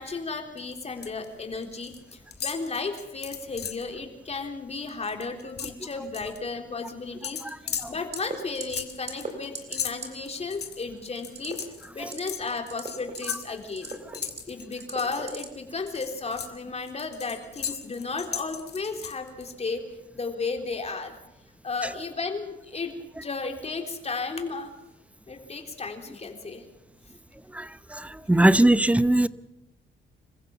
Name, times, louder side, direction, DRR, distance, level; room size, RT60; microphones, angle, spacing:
voice 1, 0.0-7.4 7.9-11.6 11.9-14.0 14.5-19.9 20.1-21.2 21.6-22.9 23.2-24.7 25.3-26.6, left 4 dB, 30° left, 5 dB, 3.5 m, -34 dB
sound 1, 0.6-1.2 1.5-2.0 2.3-3.9 4.3-4.5 4.8-6.4 7.2-15.4 15.9-19.4, left 8 dB, 55° left, 1.9 m, -37 dB
sound 2, 8.1-8.3 8.6-8.8 9.1-9.3 9.5-9.8 10.0-10.1 11.3-11.6 12.0-12.3 12.7-13.3 13.7-14.4 14.8-15.4 15.9-16.0, right 4 dB, 35° right, 3.8 m, -36 dB
voice 2, 27.5-29.3, right 1 dB, 5° right, 16 dB, 0.7 m, -21 dB
26.5 x 15.5 x 7.1 m, 0.91 s
cardioid pair, 90°, 20 cm